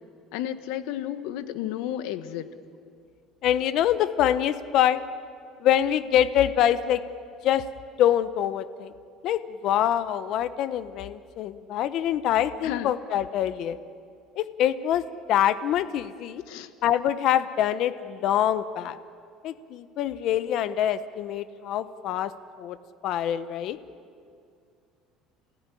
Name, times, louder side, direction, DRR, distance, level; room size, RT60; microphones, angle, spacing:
voice 1, 0.3-2.5 12.6-12.9 16.5-16.7, left 12 dB, 85° left, 10 dB, 1.4 m, -32 dB
voice 2, 3.4-5.0 5.6-7.0 7.4-7.6 8.0-8.9 9.2-13.8 14.4-15.0 15.3-16.4 16.8-19.0 19.4-22.3 22.6-22.8 23.0-23.8, left 11 dB, 55° left, 12 dB, 0.9 m, -25 dB
29.5 x 17.5 x 10.0 m, 2.3 s
cardioid pair, 140°, 0 cm